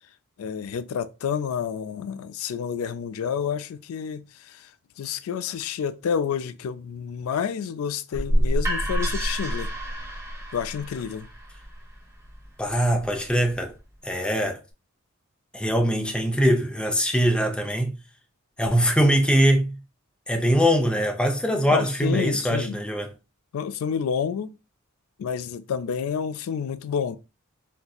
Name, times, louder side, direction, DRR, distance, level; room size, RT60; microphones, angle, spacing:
voice 1, 0.4-4.7 5.0-9.7 10.5-11.3 21.7-22.8 23.5-24.5 25.2-27.2, left 7 dB, 75° left, 0.3 m, -29 dB
sound 1, 8.1-13.9, equal, 15° right, 1.1 m, -29 dB
voice 2, 12.6-13.7 14.0-14.6 15.5-18.0 18.6-19.8 20.3-23.1, equal, 5° left, 0.5 m, -22 dB
3.9 x 2.6 x 2.3 m
head